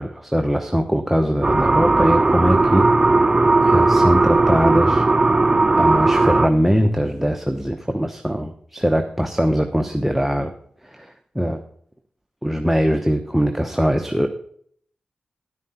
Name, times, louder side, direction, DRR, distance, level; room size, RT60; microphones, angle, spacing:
voice 1, 0.0-3.3 3.6-5.0 5.8-10.5 10.8-11.6 12.4-14.3, equal, 5° right, 6 dB, 0.9 m, -21 dB
sound 1, 1.4-6.5, right 2 dB, 25° right, 0.5 m, -16 dB
11.0 x 9.2 x 4.3 m, 0.62 s
cardioid pair, 50°, 3 cm